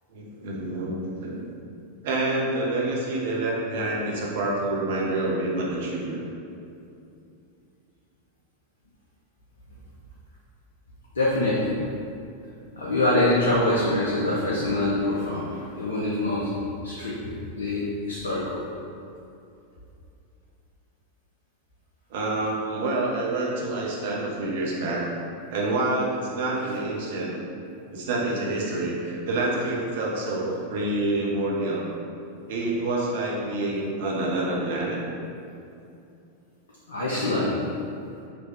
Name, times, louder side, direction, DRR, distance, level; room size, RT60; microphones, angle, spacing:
voice 1, 0.1-1.4 2.0-6.2 22.1-25.0 25.5-27.3 27.9-31.8 32.5-35.0, right 2 dB, 55° right, -3 dB, 0.9 m, -27 dB
voice 2, 11.1-11.7 12.8-16.5 16.8-18.6 36.9-37.6, left 1 dB, 70° left, -6 dB, 0.7 m, -25 dB
5.0 x 3.1 x 3.4 m, 2.6 s
figure-of-eight pair, 90°, 0 cm